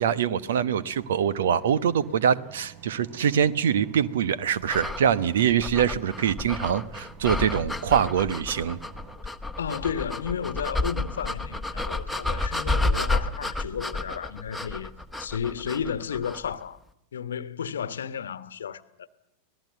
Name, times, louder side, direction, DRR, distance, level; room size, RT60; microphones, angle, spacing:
voice 1, 0.0-8.8, right 8 dB, 60° right, 1.1 m, -24 dB
sound 1, 0.8-9.2, right 8 dB, 35° right, 3.9 m, -49 dB
sound 2, 4.6-16.5, left 2 dB, ahead, 1.5 m, -31 dB
voice 2, 9.6-14.9 15.2-16.8 17.1-19.1, left 7 dB, 65° left, 1.2 m, -33 dB
25.5 x 19.0 x 8.0 m
figure-of-eight pair, 90°, 0 cm